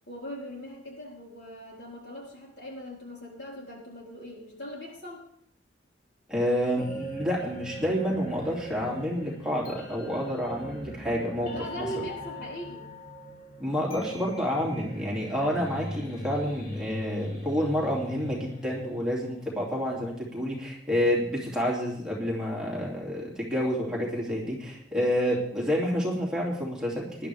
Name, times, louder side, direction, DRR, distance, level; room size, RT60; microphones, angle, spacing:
voice 1, 0.1-5.3 11.5-12.9, equal, 65° left, -3 dB, 4.6 m, -40 dB
voice 2, 6.3-11.5 11.8-11.9 13.6-27.3, equal, 5° right, -4 dB, 2.8 m, -29 dB
sound 1, 6.8-19.7, equal, 45° left, 2.6 m, -41 dB
19.0 x 11.5 x 3.5 m, 0.69 s
head